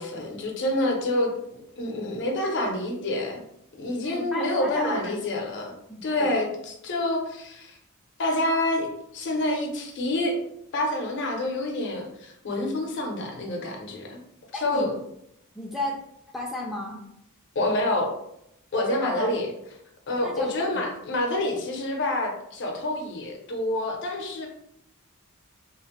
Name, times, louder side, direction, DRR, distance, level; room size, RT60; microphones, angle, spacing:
voice 1, 0.0-3.4 3.8-5.7 6.0-7.8 8.2-8.9 9.1-10.4 10.7-14.2 14.5-14.9 17.5-18.1 18.7-19.5 20.1-24.5, left 1 dB, 55° left, 1 dB, 0.6 m, -27 dB
voice 2, 4.0-5.1 5.9-6.3 14.5-14.9 15.5-16.0 16.3-17.0 19.0-19.3 20.2-20.5, left 1 dB, ahead, -2 dB, 0.3 m, -33 dB
2.9 x 2.1 x 2.9 m, 0.78 s
head